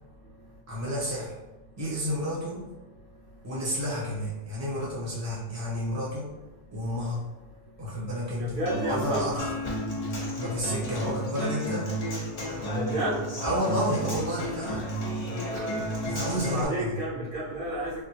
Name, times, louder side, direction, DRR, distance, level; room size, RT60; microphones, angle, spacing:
voice 1, 0.7-1.3 1.8-2.7 3.4-6.3 6.7-7.2 7.8-9.5 10.3-11.9 13.4-14.8 16.0-17.0, equal, 15° right, -7 dB, 0.8 m, -31 dB
voice 2, 8.4-9.2 12.7-13.2 15.3-15.8 16.5-18.0, right 1 dB, 50° right, -9 dB, 0.9 m, -31 dB
Human voice / Acoustic guitar, 8.7-16.6, equal, 55° left, 1.0 m, -32 dB
3.5 x 2.1 x 2.8 m, 1.0 s
omnidirectional pair, 1.2 m